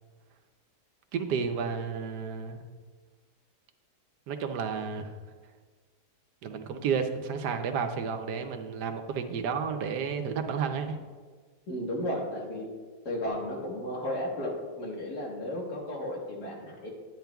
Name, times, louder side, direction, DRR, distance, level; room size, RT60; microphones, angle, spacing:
voice 1, 1.1-2.6 4.3-5.1 6.4-11.0, right 6 dB, 85° right, 6 dB, 1.3 m, -31 dB
voice 2, 11.7-12.7 13.1-16.9, left 1 dB, 75° left, -1 dB, 2.1 m, -34 dB
10.5 x 9.1 x 2.3 m, 1.5 s
omnidirectional pair, 1.7 m